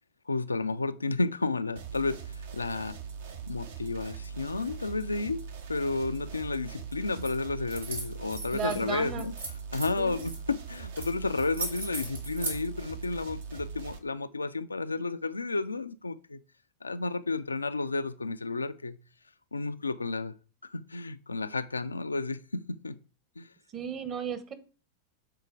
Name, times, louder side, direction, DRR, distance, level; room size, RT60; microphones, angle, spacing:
voice 1, 0.3-3.0 3.5-5.4 5.7-9.3 9.7-16.4 16.8-19.0 19.5-20.3 20.6-23.0 23.4-23.5, left 3 dB, 80° left, 0.3 m, -32 dB
sound 1, 1.8-14.0, right 6 dB, 60° right, 0.9 m, -41 dB
sound 2, 7.2-7.4 7.7-8.8 9.2-10.4 10.9-11.1 11.3-12.6, right 2 dB, 80° right, 2.1 m, -37 dB
voice 2, 8.5-9.3 10.0-10.3 23.7-24.5, right 6 dB, 30° right, 1.1 m, -34 dB
6.8 x 4.3 x 4.7 m
figure-of-eight pair, 90°, 0 cm